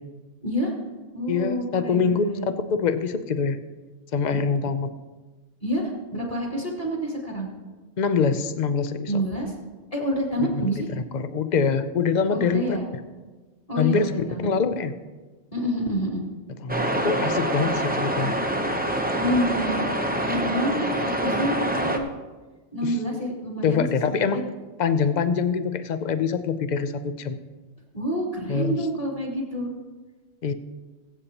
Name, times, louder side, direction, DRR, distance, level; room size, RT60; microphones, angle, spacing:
voice 1, 0.4-0.7 1.1-2.5 4.3-4.4 5.6-7.5 9.1-9.5 9.9-10.9 12.3-12.9 13.7-14.5 15.5-16.2 19.1-22.1 22.7-24.4 27.9-29.7, equal, 25° left, -4 dB, 3.0 m, -28 dB
voice 2, 1.3-3.6 4.1-4.9 8.0-9.1 10.5-10.6 10.9-12.8 13.8-14.1 14.4-14.9 16.6-18.3 22.8-22.9 23.6-24.5 24.8-27.4 28.5-28.8 30.4-30.5, left 5 dB, 55° left, 11 dB, 0.5 m, -24 dB
sound 1, 16.7-22.0, right 1 dB, 10° right, 0.6 m, -25 dB
20.5 x 8.3 x 2.9 m, 1.3 s
omnidirectional pair, 1.5 m